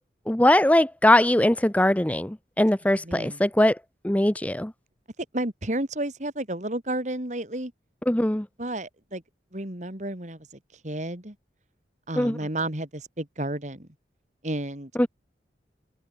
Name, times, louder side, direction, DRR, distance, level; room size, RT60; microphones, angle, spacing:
voice 1, 0.3-3.8 4.0-4.7 8.1-8.5 12.2-12.4 15.0-15.1, left 1 dB, 10° left, 0.6 m, -21 dB
voice 2, 3.0-3.4 5.3-7.7 8.6-9.2 9.5-10.5 10.8-11.3 12.1-13.9 14.4-14.9, right 1 dB, 40° right, 3.0 m, -31 dB
head